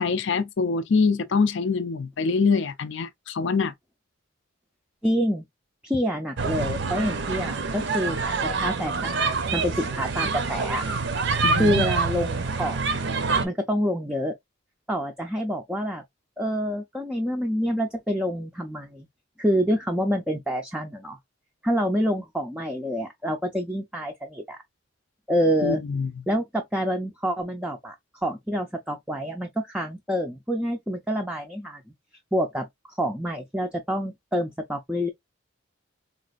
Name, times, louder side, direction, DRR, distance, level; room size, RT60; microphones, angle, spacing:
voice 1, 0.0-3.7 11.4-11.9 25.6-26.1, left 4 dB, 55° left, 0.4 m, -24 dB
voice 2, 5.0-5.4 5.8-10.8 11.5-13.1 13.4-14.3 14.9-16.0 16.4-19.1 19.4-21.2 21.6-24.6 25.3-25.8 26.3-27.9 28.2-31.8 32.3-35.1, equal, 5° right, 0.4 m, -27 dB
sound 1, 6.4-13.5, right 4 dB, 55° right, 0.6 m, -26 dB
4.0 x 2.4 x 2.4 m
head